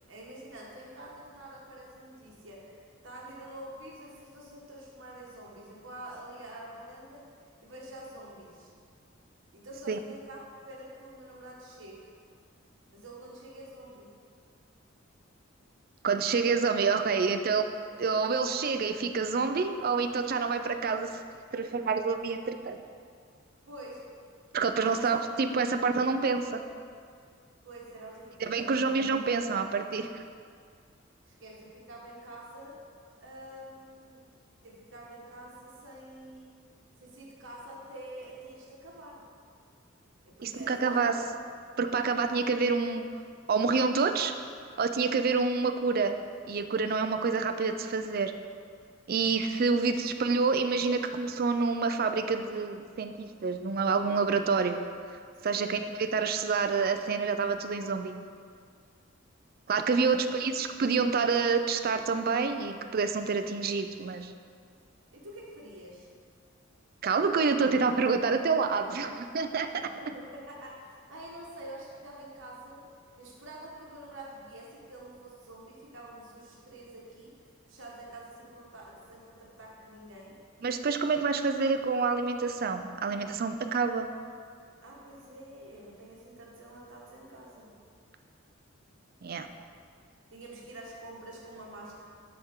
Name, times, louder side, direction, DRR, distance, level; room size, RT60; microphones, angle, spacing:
voice 1, 0.1-2.8 3.0-7.3 7.6-8.7 9.5-12.1 12.9-14.1 23.7-24.0 24.8-25.9 27.6-28.9 31.3-32.8 33.2-34.2 34.6-36.6 37.0-39.2 40.3-41.2 55.4-55.7 59.8-60.4 65.1-66.1 69.8-72.9 73.2-77.4 77.7-80.4 84.8-87.7 90.3-92.0, right 1 dB, 65° right, -3 dB, 1.6 m, -47 dB
voice 2, 16.0-17.7 18.0-21.2 21.5-22.8 24.5-26.6 28.4-30.2 40.4-41.1 41.8-43.0 43.5-44.3 44.8-46.1 46.5-48.3 49.1-54.8 55.4-58.1 59.7-64.3 67.0-69.9 80.6-84.1 89.2-89.5, right 4 dB, 45° right, 7 dB, 0.4 m, -28 dB
12.0 x 4.5 x 3.7 m, 2.2 s
head